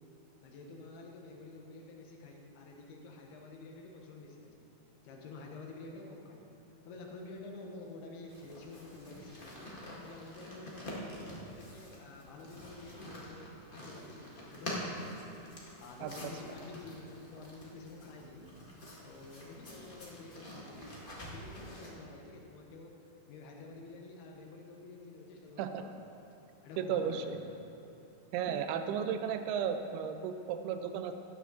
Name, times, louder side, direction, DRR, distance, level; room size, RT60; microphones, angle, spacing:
voice 1, 0.4-4.7 5.0-6.5 6.8-9.8 10.0-15.2 15.8-18.5 19.0-20.8 21.3-23.0 23.2-26.0 26.6-27.4, left 3 dB, 85° left, 1 dB, 3.3 m, -49 dB
sound 1, 8.3-21.9, left 1 dB, 70° left, 0.5 m, -46 dB
voice 2, 26.8-27.4 28.3-31.1, right 8 dB, 90° right, 8 dB, 2.6 m, -34 dB
14.0 x 10.0 x 3.9 m, 2.9 s
omnidirectional pair, 4.4 m